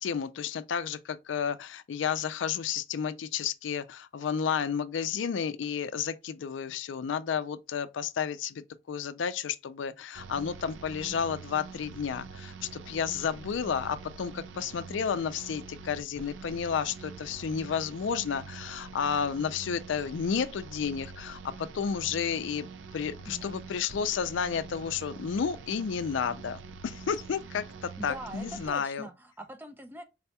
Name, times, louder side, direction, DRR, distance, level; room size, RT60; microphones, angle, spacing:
voice 1, 0.0-22.7 22.9-29.1, left 7 dB, 75° left, 0.4 m, -32 dB
sound 1, 10.1-28.7, right 4 dB, 75° right, 0.4 m, -45 dB
voice 2, 23.3-23.6 28.0-30.0, right 1 dB, 10° right, 0.5 m, -42 dB
4.0 x 2.2 x 2.8 m
head